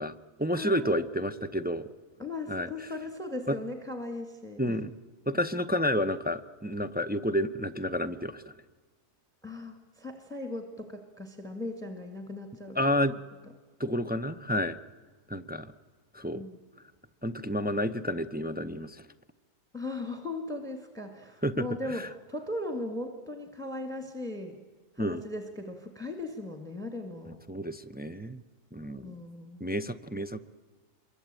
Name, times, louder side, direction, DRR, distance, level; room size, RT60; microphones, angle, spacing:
voice 1, 0.0-1.9 2.5-2.7 3.5-3.6 4.6-4.9 5.3-8.5 12.7-13.2 13.8-14.8 15.3-15.7 16.1-16.4 17.2-19.1 21.4-22.1 25.0-25.2 27.5-28.4 28.7-29.2 29.6-30.4, equal, 15° right, 8 dB, 0.4 m, -30 dB
voice 2, 0.5-1.0 2.2-4.8 9.4-12.8 16.3-16.6 19.7-24.6 25.0-27.4 29.0-29.6, left 2 dB, 5° left, 6 dB, 1.8 m, -38 dB
27.0 x 23.0 x 8.9 m, 1.4 s
omnidirectional pair, 1.4 m